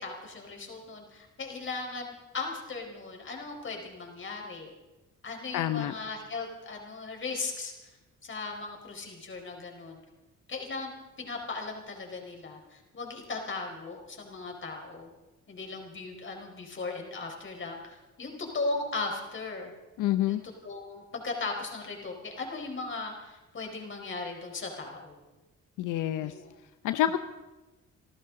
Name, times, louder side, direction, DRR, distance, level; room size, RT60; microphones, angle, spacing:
voice 1, 0.0-4.7 5.2-7.9 8.2-10.0 10.5-10.9 11.2-15.1 15.5-19.7 20.3-25.2 26.2-26.5, left 3 dB, 40° left, 2 dB, 4.6 m, -37 dB
voice 2, 5.5-5.9 20.0-20.4 25.8-26.3 26.8-27.2, left 12 dB, 90° left, 11 dB, 0.7 m, -27 dB
26.5 x 13.5 x 3.9 m, 1.1 s
cardioid pair, 90°, 30 cm